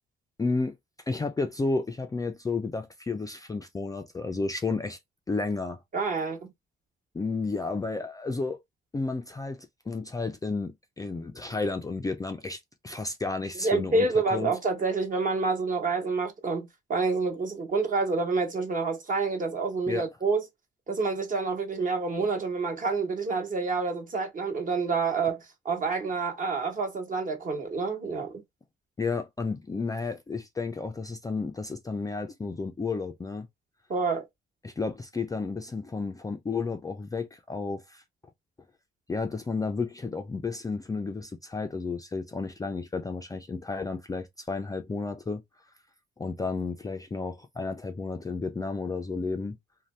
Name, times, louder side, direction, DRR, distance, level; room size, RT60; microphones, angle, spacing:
voice 1, 0.4-0.7 1.1-5.0 5.3-5.8 7.1-8.6 8.9-14.5 19.9-20.1 29.0-33.5 34.6-38.0 39.1-45.4 46.2-49.6, left 3 dB, 20° left, 0.4 m, -32 dB
voice 2, 5.9-6.5 13.6-20.4 20.9-25.4 25.6-28.4 33.9-34.2, right 4 dB, 40° right, 1.1 m, -28 dB
2.6 x 2.2 x 3.2 m
cardioid pair, 90°, 20 cm